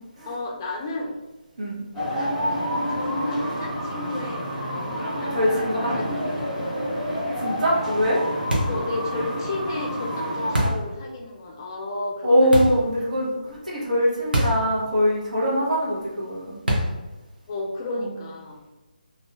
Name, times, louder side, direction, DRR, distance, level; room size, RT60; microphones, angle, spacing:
voice 1, 0.3-1.2 2.2-2.3 2.9-4.9 5.6-7.0 8.7-12.7 17.5-18.6, left 2 dB, 25° left, -1 dB, 0.5 m, -33 dB
sound 1, 1.9-10.7, equal, ahead, 1.3 m, -28 dB
voice 2, 5.3-5.9 7.4-8.2 12.2-16.6 18.0-18.1, equal, 55° right, -5 dB, 0.9 m, -22 dB
sound 2, 8.5-8.9 10.5-10.9 12.5-12.9 14.3-14.7 15.0-15.1 16.7-17.1, right 1 dB, 85° right, 0.7 m, -24 dB
2.9 x 2.4 x 2.3 m, 1.1 s
figure-of-eight pair, 155°, 5 cm